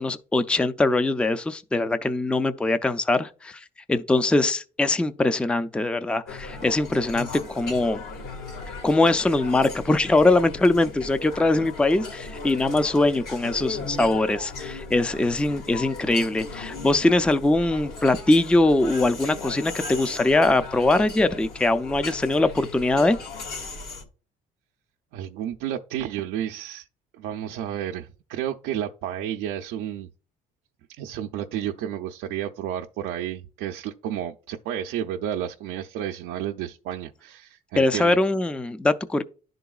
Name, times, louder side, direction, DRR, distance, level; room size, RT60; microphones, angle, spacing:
voice 1, 0.0-8.0 8.8-23.2 37.8-39.2, left 2 dB, 5° left, 0.4 m, -22 dB
sound 1, 6.3-24.0, left 3 dB, 65° left, 1.8 m, -37 dB
voice 2, 25.1-26.9 27.2-30.1 31.0-38.2, right 10 dB, 90° right, 0.5 m, -31 dB
11.0 x 3.8 x 2.3 m
cardioid pair, 110°, 17 cm